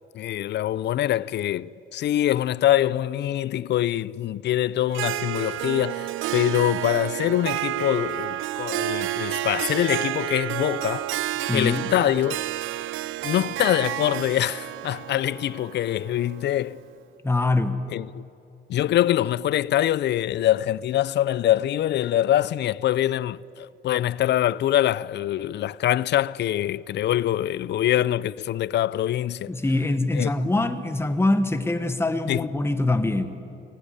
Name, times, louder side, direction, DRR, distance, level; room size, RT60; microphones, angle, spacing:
voice 1, 0.1-11.1 11.5-12.4 13.2-16.8 17.9-18.1 18.7-29.5 30.2-30.3 32.3-32.5, left 12 dB, 60° left, 0.5 m, -24 dB
Harp, 4.9-16.7, right 14 dB, 85° right, 0.5 m, -30 dB
voice 2, 11.5-11.9 17.2-17.8 29.5-33.3, left 2 dB, 10° left, 1.3 m, -24 dB
19.0 x 14.5 x 9.9 m
cardioid pair, 90°, 20 cm